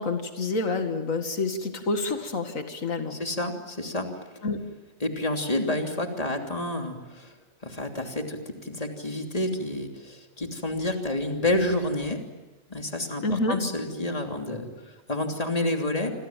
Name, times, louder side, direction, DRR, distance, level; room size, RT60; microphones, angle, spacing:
voice 1, 0.0-3.2 4.4-4.6 13.2-13.6, left 3 dB, 90° left, 6 dB, 2.5 m, -28 dB
voice 2, 3.1-4.1 5.0-7.3 7.6-12.2 12.7-16.1, left 1 dB, 30° left, 3 dB, 3.1 m, -29 dB
29.0 x 25.0 x 7.5 m, 1.1 s
omnidirectional pair, 1.3 m